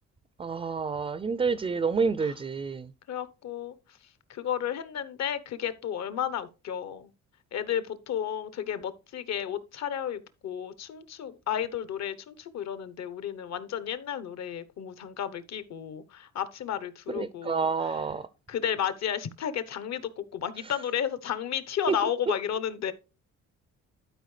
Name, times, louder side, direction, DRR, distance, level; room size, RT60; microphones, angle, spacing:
voice 1, 0.4-2.9 17.2-18.2 21.9-22.0, right 5 dB, 20° right, 0.4 m, -28 dB
voice 2, 3.1-3.7 4.3-7.1 7.5-18.0 18.5-22.9, left 9 dB, 60° left, 0.9 m, -33 dB
12.0 x 4.6 x 3.2 m
cardioid pair, 90°, 30 cm